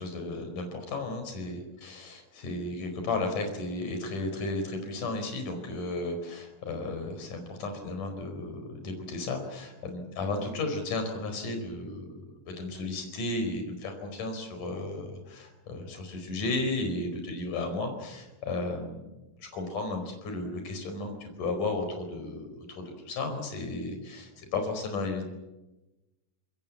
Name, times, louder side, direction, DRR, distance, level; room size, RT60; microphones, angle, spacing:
voice 1, 0.0-19.1 19.4-25.2, left 2 dB, 60° left, 6 dB, 6.1 m, -34 dB
26.5 x 22.5 x 7.5 m, 1.0 s
omnidirectional pair, 4.3 m